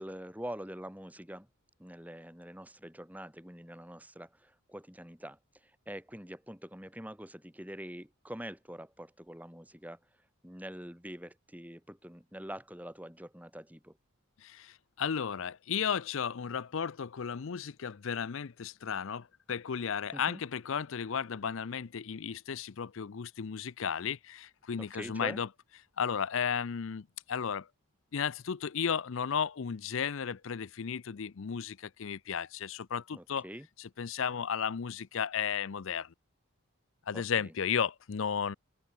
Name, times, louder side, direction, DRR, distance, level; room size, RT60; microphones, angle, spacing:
voice 1, 0.0-1.5 1.8-5.4 5.9-10.0 10.4-14.0 20.1-20.4 24.8-25.4 33.1-33.7 37.1-37.5, equal, 5° right, 5.2 m, -45 dB
voice 2, 14.4-25.5 26.0-27.7 28.1-33.4 33.8-36.1 37.1-38.6, left 7 dB, 65° left, 0.5 m, -34 dB
open air
head